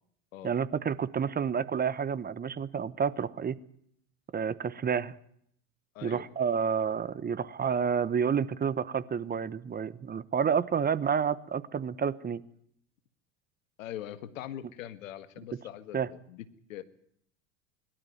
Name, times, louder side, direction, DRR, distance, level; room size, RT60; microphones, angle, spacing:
voice 1, 0.4-3.6 4.3-5.1 6.0-12.4 15.9-16.1, right 7 dB, 25° right, 18 dB, 1.0 m, -29 dB
voice 2, 13.8-16.8, left 12 dB, 80° left, 13 dB, 1.8 m, -42 dB
22.5 x 12.5 x 9.3 m, 0.68 s
hypercardioid pair, 90°, 39 cm